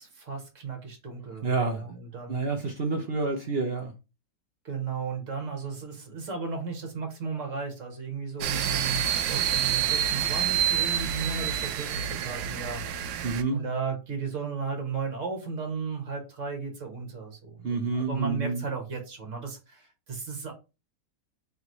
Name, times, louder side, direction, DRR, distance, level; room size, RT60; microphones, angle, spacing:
voice 1, 0.0-2.4 4.6-13.3 13.5-20.5, right 5 dB, 45° right, 1.5 m, -35 dB
voice 2, 1.4-1.9 2.3-3.9 13.2-13.6 17.6-18.6, right 3 dB, 75° right, 0.5 m, -28 dB
sound 1, 8.4-13.4, right 9 dB, 90° right, 1.3 m, -28 dB
3.5 x 3.0 x 3.8 m
omnidirectional pair, 1.9 m